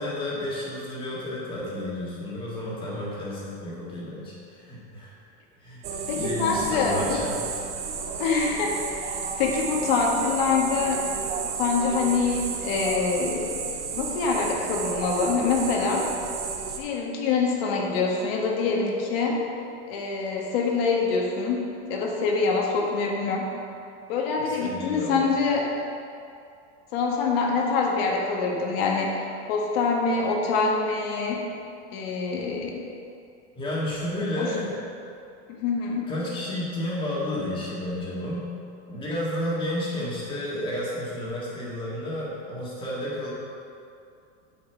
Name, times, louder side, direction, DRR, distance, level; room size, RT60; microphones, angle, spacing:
voice 1, 0.0-5.1 5.6-5.8 6.1-7.4 24.5-25.2 33.6-34.8 36.1-38.5 38.9-43.3, left 1 dB, 15° left, -6 dB, 1.8 m, -31 dB
sound 1, 5.8-16.8, right 5 dB, 20° right, 0.4 m, -32 dB
voice 2, 6.1-7.2 8.2-11.0 11.4-13.5 13.9-16.1 16.8-19.4 19.9-23.5 24.1-25.7 26.9-29.2 29.5-31.4 31.9-32.8 34.4-34.5 35.5-36.1, left 4 dB, 55° left, 0 dB, 1.6 m, -25 dB
8.0 x 5.5 x 6.8 m, 2.5 s
supercardioid pair, 180°, 34 cm